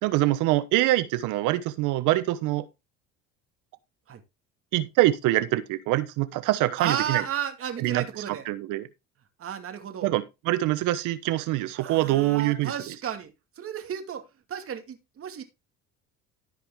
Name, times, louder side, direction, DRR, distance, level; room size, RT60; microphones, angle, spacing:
voice 1, 0.0-2.7 4.7-7.2 7.8-8.9 10.0-12.7, right 16 dB, 75° right, 1.1 m, -25 dB
voice 2, 6.8-8.5 9.4-10.1 11.7-14.2 14.5-15.4, right 9 dB, 45° right, 2.2 m, -33 dB
14.0 x 5.1 x 3.6 m
supercardioid pair, 95°, 31 cm